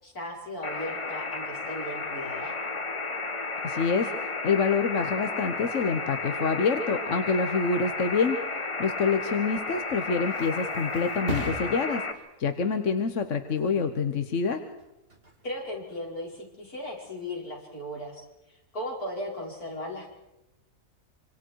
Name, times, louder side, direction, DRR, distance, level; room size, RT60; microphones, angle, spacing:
voice 1, 0.0-2.6 15.4-18.2 18.7-20.1, left 1 dB, 70° left, -2 dB, 6.2 m, -36 dB
sound 1, 0.6-12.1, left 3 dB, 20° left, 1.3 m, -33 dB
voice 2, 3.6-8.4 8.8-12.0 12.4-14.6, left 5 dB, 50° left, 7 dB, 1.4 m, -26 dB
Thump thud, 9.8-17.2 17.6-18.0, right 1 dB, 35° right, 3.0 m, -43 dB
26.5 x 26.0 x 4.7 m, 0.96 s
omnidirectional pair, 1.7 m